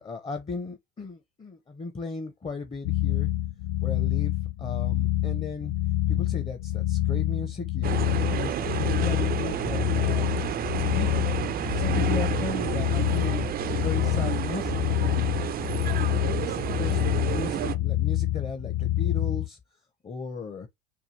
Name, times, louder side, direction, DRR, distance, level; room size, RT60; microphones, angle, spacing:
voice 1, 0.0-3.3 3.8-4.3 4.6-5.7 6.1-10.4 10.9-11.1 11.7-14.8 15.2-15.5 16.3-19.6 20.0-20.7, left 3 dB, 20° left, 0.8 m, -36 dB
sound 1, 2.8-19.5, left 14 dB, 55° left, 0.8 m, -27 dB
sound 2, 7.8-17.8, right 10 dB, 30° right, 0.5 m, -30 dB
4.7 x 2.4 x 3.2 m
hypercardioid pair, 85°, 30 cm